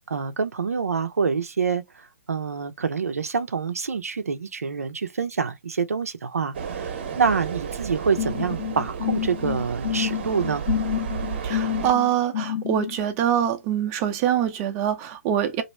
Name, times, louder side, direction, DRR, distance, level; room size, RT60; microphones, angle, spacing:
voice 1, 0.1-10.6, right 5 dB, 75° right, 0.6 m, -26 dB
sound 1, 6.5-11.9, right 7 dB, 45° right, 1.0 m, -32 dB
sound 2, 8.2-13.0, left 10 dB, 40° left, 0.9 m, -28 dB
voice 2, 11.4-15.6, right 10 dB, 25° right, 0.7 m, -24 dB
3.0 x 2.7 x 4.2 m
figure-of-eight pair, 140°, 8 cm